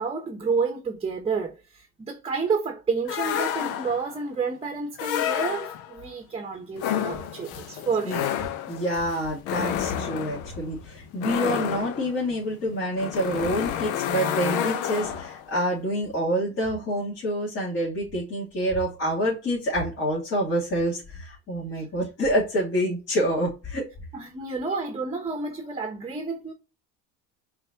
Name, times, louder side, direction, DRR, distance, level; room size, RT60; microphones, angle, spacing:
voice 1, 0.0-8.3 21.7-21.9 24.1-26.5, right 4 dB, 15° right, 0.9 m, -30 dB
sound 1, 3.1-4.2 5.0-6.0 6.8-15.5, left 10 dB, 75° left, 0.8 m, -30 dB
voice 2, 8.7-23.9, equal, 45° left, 2.7 m, -27 dB
5.4 x 3.3 x 2.7 m
supercardioid pair, 100°, 34 cm